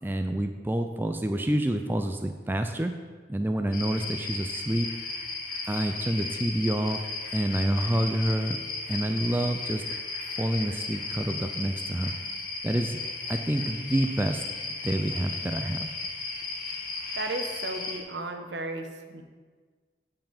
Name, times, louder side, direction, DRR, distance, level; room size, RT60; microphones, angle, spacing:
voice 1, 0.0-2.9 3.3-4.9 5.7-7.0 7.3-8.6 8.9-9.8 10.4-12.1 12.6-13.0 13.3-14.4 14.8-15.9, right 1 dB, 10° right, 5 dB, 0.4 m, -28 dB
sound 1, 3.7-18.0, left 3 dB, 50° left, 1.2 m, -35 dB
voice 2, 17.2-18.9 19.1-19.2, right 2 dB, 75° right, 5 dB, 0.9 m, -34 dB
9.3 x 5.6 x 5.1 m, 1.5 s
head